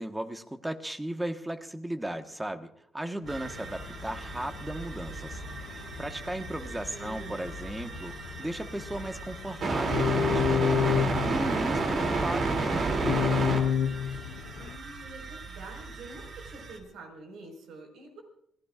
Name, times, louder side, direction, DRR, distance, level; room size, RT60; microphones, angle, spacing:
voice 1, 0.0-5.4 5.7-13.7, right 1 dB, 10° right, 7 dB, 1.4 m, -36 dB
sound 1, 3.2-14.8, left 8 dB, 90° left, 0.6 m, -33 dB
sound 2, 3.3-16.8, right 3 dB, 55° right, 3.0 m, -32 dB
voice 2, 6.6-7.5 14.6-18.2, right 2 dB, 80° right, 3 dB, 5.0 m, -47 dB
27.5 x 18.5 x 2.5 m, 0.72 s
cardioid pair, 90°, 0 cm